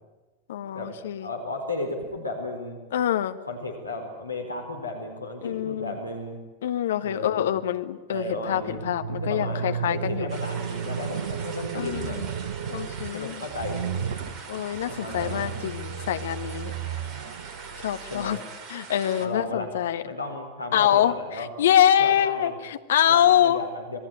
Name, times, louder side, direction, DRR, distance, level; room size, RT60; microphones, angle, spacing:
voice 1, 0.5-1.3 2.9-3.4 5.4-6.0 6.6-10.3 11.7-12.3 12.7-13.4 14.5-16.7 17.8-18.4 18.7-20.0 20.7-23.6, left 10 dB, 60° left, 9 dB, 1.4 m, -25 dB
voice 2, 1.2-2.8 3.5-6.4 7.0-7.5 8.1-8.8 9.1-12.2 13.1-14.2 14.9-15.5 18.1-18.4 19.2-19.7 20.0-21.5 22.0-22.6 23.1-24.0, left 2 dB, 80° left, 3 dB, 4.4 m, -34 dB
sound 1, 8.4-18.3, right 7 dB, 60° right, 1.4 m, -34 dB
sound 2, 10.3-19.3, right 5 dB, 30° right, 3.3 m, -42 dB
27.5 x 20.0 x 9.3 m, 1.2 s
figure-of-eight pair, 90°, 0 cm